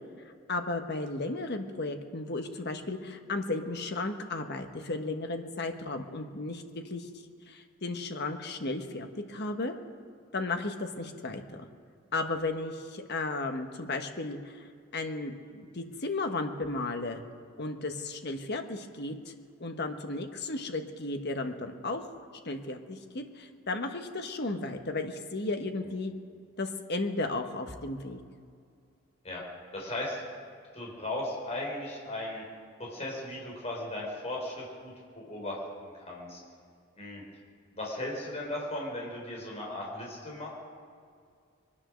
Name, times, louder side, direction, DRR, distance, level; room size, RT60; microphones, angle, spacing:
voice 1, 0.5-7.1 7.5-9.7 10.3-11.7 12.1-14.7 14.9-17.2 17.6-19.3 19.6-22.1 22.4-26.1 26.6-28.2, left 2 dB, 55° left, 6 dB, 1.2 m, -34 dB
voice 2, 29.7-30.2 30.7-32.4 32.8-36.4 37.0-37.2 37.7-40.5, left 1 dB, 35° left, -3 dB, 4.2 m, -37 dB
23.0 x 9.9 x 6.3 m, 2.3 s
head